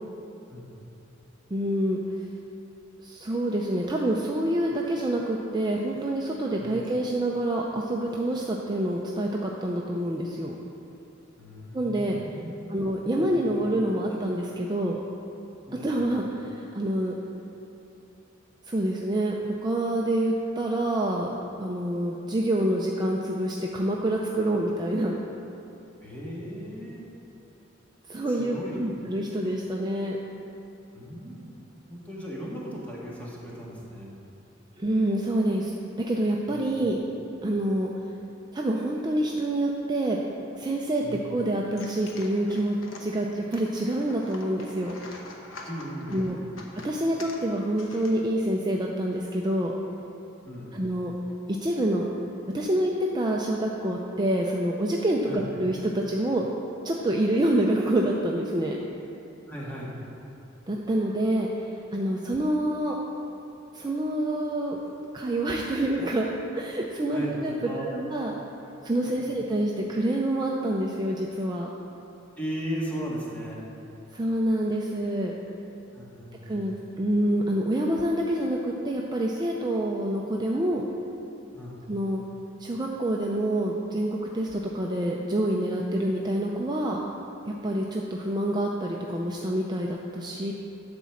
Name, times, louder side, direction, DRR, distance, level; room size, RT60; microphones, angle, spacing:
voice 1, 1.5-2.0 3.0-10.5 11.7-12.2 12.7-15.0 15.7-17.1 18.7-25.2 28.1-30.2 34.8-37.0 37.4-37.9 38.5-40.2 40.5-41.0 41.3-44.9 46.1-46.4 46.8-49.7 50.7-51.1 51.6-52.1 52.5-56.5 56.8-58.8 60.7-63.0 63.7-64.8 65.1-67.5 67.8-68.3 68.8-71.7 74.1-75.3 76.5-80.8 81.9-82.2 82.6-84.1 84.3-87.0 87.4-90.5, right 1 dB, 20° right, -1 dB, 0.5 m, -27 dB
voice 2, 11.4-12.7 13.2-13.5 15.7-16.0 26.0-27.0 28.3-28.9 30.9-31.5 31.9-34.1 36.5-36.7 41.0-41.2 45.7-46.5 50.4-50.7 55.3-55.4 59.5-59.9 67.1-68.0 69.0-69.4 72.4-73.6 75.9-76.6 81.5-81.8, equal, 10° left, -6 dB, 1.8 m, -37 dB
sound 1, 41.8-48.6, left 2 dB, 80° left, 1.1 m, -46 dB
11.5 x 4.2 x 7.1 m, 2.9 s
head